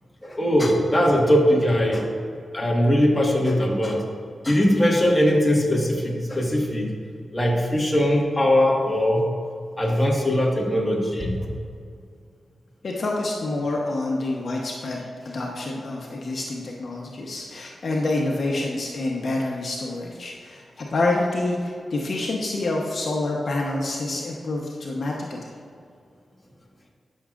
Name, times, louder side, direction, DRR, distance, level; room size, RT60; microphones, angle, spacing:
voice 1, 0.2-2.1 2.5-4.0 4.4-6.9 7.3-9.3 9.8-11.5, equal, 20° left, -1 dB, 1.6 m, -20 dB
voice 2, 12.8-25.4, left 2 dB, 60° left, -1 dB, 1.0 m, -27 dB
12.0 x 6.2 x 2.5 m, 2.3 s
cardioid pair, 55°, 0 cm